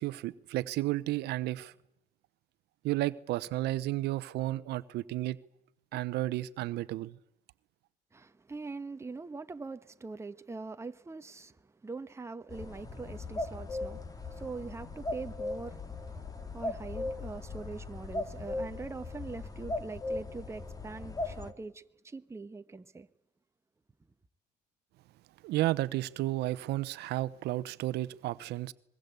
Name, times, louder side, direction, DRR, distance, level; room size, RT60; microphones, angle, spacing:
voice 1, 0.0-1.7 2.8-5.4 5.9-7.1 25.4-28.7, right 16 dB, 80° right, 0.9 m, -32 dB
voice 2, 8.1-23.1, right 3 dB, 15° right, 1.1 m, -43 dB
sound 1, 12.5-21.5, left 2 dB, 20° left, 2.0 m, -38 dB
25.0 x 22.0 x 8.2 m
cardioid pair, 110°, 17 cm